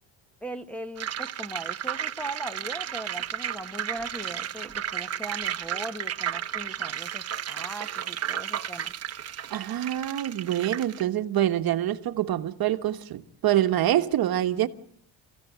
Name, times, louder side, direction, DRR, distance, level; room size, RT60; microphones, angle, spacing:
voice 1, 0.4-8.9, right 1 dB, 5° left, 1.1 m, -39 dB
sound 1, 1.0-11.0, right 9 dB, 35° right, 1.0 m, -33 dB
voice 2, 9.5-14.7, right 12 dB, 55° right, 1.4 m, -25 dB
29.5 x 15.0 x 9.3 m
cardioid pair, 145°, 44 cm